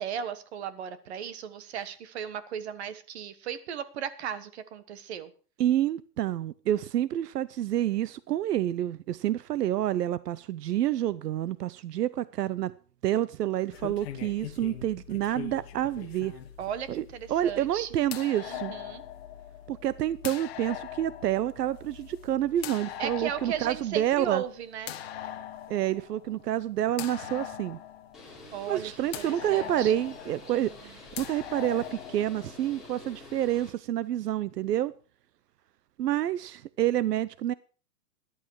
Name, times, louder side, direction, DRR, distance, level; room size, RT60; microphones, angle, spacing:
voice 1, 0.0-5.3 16.6-17.9 18.3-19.0 23.0-24.9 28.5-29.9 30.5-31.0, right 8 dB, 40° right, 1.4 m, -36 dB
voice 2, 5.6-12.7 13.0-16.4 16.9-17.0 17.3-18.7 19.7-24.4 25.7-27.8 28.7-34.9 36.0-37.5, right 12 dB, 75° right, 0.8 m, -28 dB
sound 1, 13.7-32.9, left 11 dB, 40° left, 1.5 m, -42 dB
Bird, 28.1-33.7, left 2 dB, ahead, 3.8 m, -48 dB
14.0 x 11.5 x 4.7 m
hypercardioid pair, 170°, 47 cm